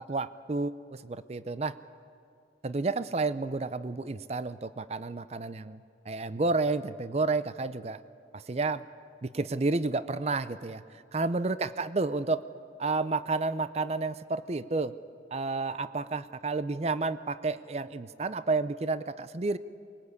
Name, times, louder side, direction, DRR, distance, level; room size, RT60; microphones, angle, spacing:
voice 1, 0.0-1.8 2.6-8.0 8.3-8.8 9.2-10.8 11.1-12.4 12.8-14.9 15.3-19.6, right 3 dB, 35° right, 14 dB, 0.5 m, -31 dB
23.0 x 21.0 x 8.3 m, 2.5 s
head